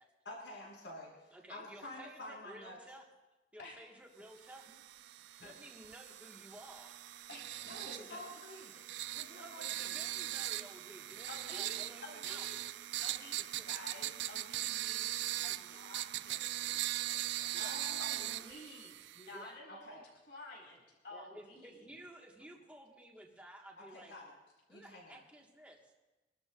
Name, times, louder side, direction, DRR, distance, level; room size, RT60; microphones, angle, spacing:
voice 1, 0.2-2.8 7.7-8.8 9.1-10.0 17.6-18.3 19.7-20.0 23.8-24.3 24.7-25.2, left 1 dB, 85° left, -4 dB, 6.0 m, -49 dB
voice 2, 1.3-3.0 3.5-4.7 5.4-7.0 7.6-8.0 9.3-12.5 13.4-13.7 17.5-17.8 19.3-19.6 21.1-24.1 24.7-25.9, right 1 dB, 10° right, -1 dB, 1.7 m, -54 dB
sound 1, 4.5-19.4, right 15 dB, 75° right, 0.3 m, -40 dB
voice 3, 7.3-8.2 11.3-12.6 13.0-17.5 18.0-20.0 20.3-21.9, left 2 dB, 70° left, -3 dB, 4.8 m, -52 dB
26.0 x 12.5 x 2.6 m, 1.1 s
head